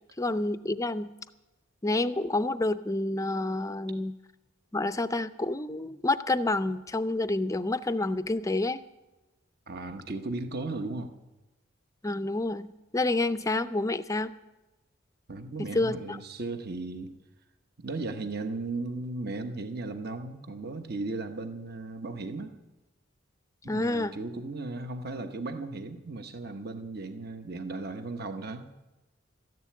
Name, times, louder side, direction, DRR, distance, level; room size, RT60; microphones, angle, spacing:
voice 1, 0.2-1.1 1.8-4.1 4.7-8.8 12.0-14.3 15.6-16.2 23.7-24.1, left 2 dB, 15° left, 12 dB, 0.5 m, -28 dB
voice 2, 9.7-11.2 15.3-17.1 17.8-22.5 23.6-28.7, right 3 dB, 50° right, 7 dB, 1.0 m, -36 dB
13.5 x 11.0 x 8.5 m, 1.1 s
head